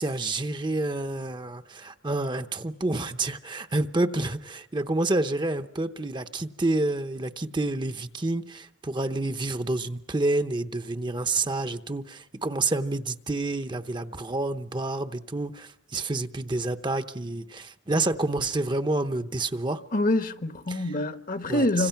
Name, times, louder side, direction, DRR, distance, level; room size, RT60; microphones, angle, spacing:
voice 1, 0.0-19.8 20.7-20.9 21.5-21.9, right 2 dB, 25° right, 0.8 m, -28 dB
voice 2, 19.9-21.9, left 1 dB, 50° left, 1.1 m, -26 dB
29.0 x 26.0 x 5.8 m
head